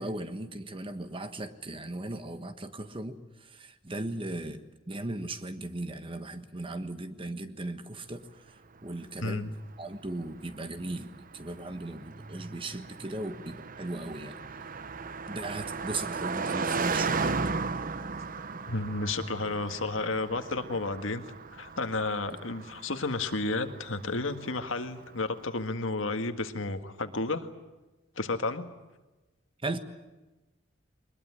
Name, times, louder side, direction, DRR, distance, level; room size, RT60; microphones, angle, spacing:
voice 1, 0.0-8.3 8.8-14.4 15.3-17.4 22.3-22.4 29.6-29.8, right 2 dB, 25° right, 9 dB, 1.5 m, -37 dB
Car passing by, 8.8-25.2, right 4 dB, 45° right, 0.9 m, -36 dB
voice 2, 18.7-21.2 21.5-27.5 28.2-28.7, left 3 dB, 85° left, 8 dB, 1.8 m, -32 dB
22.5 x 21.0 x 9.7 m, 1.1 s
head